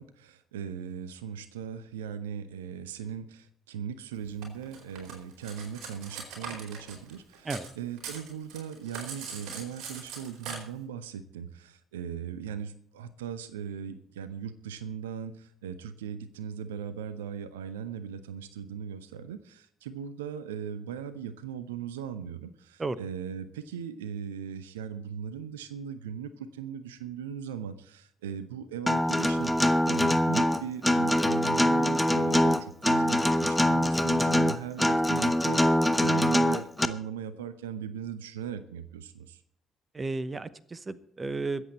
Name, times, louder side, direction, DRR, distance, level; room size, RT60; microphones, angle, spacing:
voice 1, 0.0-39.4, right 8 dB, 75° right, 14 dB, 0.7 m, -39 dB
Cutlery silverware, 4.4-7.7 8.0-10.6, right 5 dB, 55° right, 4.3 m, -41 dB
Acoustic guitar, 28.9-36.8, left 1 dB, 5° left, 1.1 m, -24 dB
voice 2, 39.9-41.6, right 3 dB, 25° right, 17 dB, 1.0 m, -33 dB
22.0 x 8.2 x 4.4 m, 0.65 s
figure-of-eight pair, 45°, 0 cm